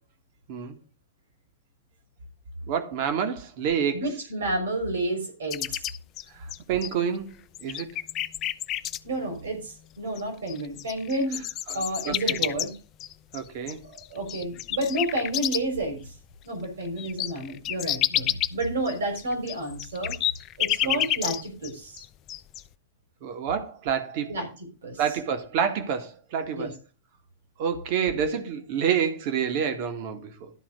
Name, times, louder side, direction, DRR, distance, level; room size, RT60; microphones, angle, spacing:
voice 1, 2.7-4.0 6.7-7.3 7.6-7.9 11.7-12.4 13.3-13.8 20.8-21.0 23.2-24.4 25.0-26.7 27.6-30.5, right 7 dB, 50° right, 1.8 m, -28 dB
voice 2, 3.9-5.9 9.0-11.4 11.7-12.7 13.8-16.1 16.4-20.2 20.6-22.0 24.3-24.5 24.8-25.0 26.6-26.7, right 1 dB, 70° right, 3.6 m, -30 dB
sound 1, 5.5-7.2 7.5-9.0 10.2-10.3 10.5-15.8 16.2-16.3 16.6-21.7 22.0-22.6, left 12 dB, 35° left, 0.6 m, -29 dB
12.0 x 4.2 x 6.6 m
figure-of-eight pair, 95°, 0 cm